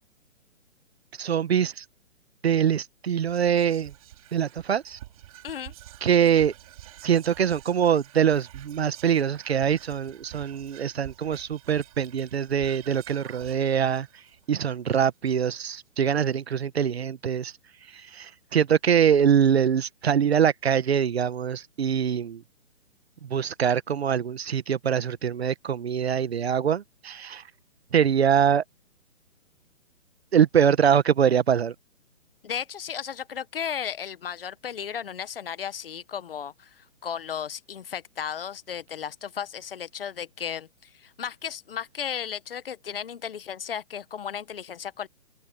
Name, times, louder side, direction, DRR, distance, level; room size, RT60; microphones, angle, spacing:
voice 1, 1.2-1.8 2.4-3.9 4.3-5.0 6.0-6.5 7.0-14.1 14.5-17.5 17.9-22.4 23.2-27.4 27.9-28.6 30.3-31.7, right 8 dB, 50° right, 1.4 m, -23 dB
Whispering, 3.2-15.7, right 14 dB, 25° right, 3.3 m, -48 dB
voice 2, 32.4-45.1, left 8 dB, 45° left, 1.4 m, -35 dB
open air
hypercardioid pair, 170°, 39 cm